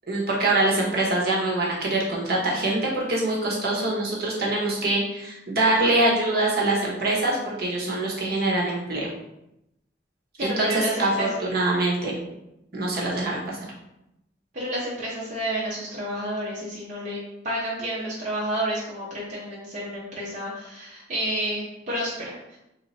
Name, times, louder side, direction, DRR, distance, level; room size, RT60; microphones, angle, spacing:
voice 1, 0.1-9.1 10.4-11.1 11.4-12.2 12.7-13.6, right 2 dB, 60° right, -3 dB, 1.1 m, -24 dB
voice 2, 10.4-11.3 14.5-22.6, right 1 dB, 45° right, -7 dB, 0.9 m, -30 dB
3.3 x 2.8 x 4.1 m, 0.86 s
head